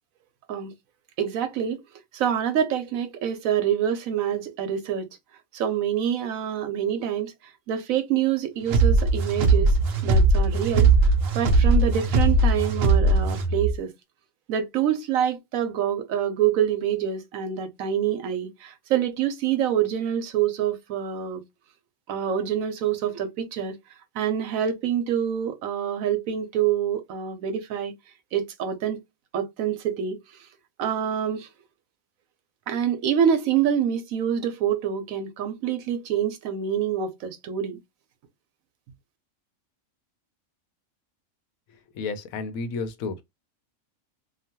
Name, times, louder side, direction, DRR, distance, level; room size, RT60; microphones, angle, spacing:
voice 1, 1.2-1.8 2.1-5.1 5.5-7.3 7.7-9.7 10.0-10.9 11.3-13.9 14.5-21.4 22.1-23.7 24.1-27.9 28.3-29.0 29.3-30.2 30.8-31.5 32.7-37.8, right 9 dB, 80° right, 1.1 m, -26 dB
sound 1, 8.7-13.8, right 3 dB, 60° right, 0.7 m, -20 dB
voice 2, 41.7-43.2, left 4 dB, 90° left, 1.1 m, -32 dB
2.9 x 2.2 x 2.7 m
omnidirectional pair, 1.4 m